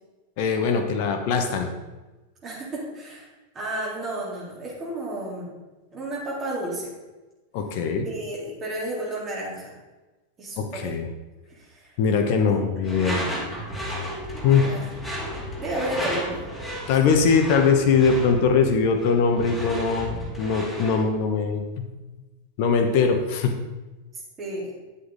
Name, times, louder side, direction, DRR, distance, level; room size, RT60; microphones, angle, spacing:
voice 1, 0.4-1.7 7.5-8.1 10.6-11.1 12.0-13.2 14.4-14.7 16.9-21.9 22.6-23.6, left 5 dB, 45° left, 5 dB, 1.2 m, -21 dB
voice 2, 2.4-3.3 3.5-5.5 5.9-6.9 8.0-9.7 10.4-10.9 11.5-12.0 12.5-12.6 14.6-14.8 15.3-16.4 16.8-17.0 24.4-24.7, right 1 dB, 25° right, -4 dB, 3.7 m, -32 dB
Door / Screech, 12.8-21.1, equal, ahead, 2.7 m, -33 dB
9.9 x 7.9 x 4.0 m, 1.2 s
figure-of-eight pair, 90°, 0 cm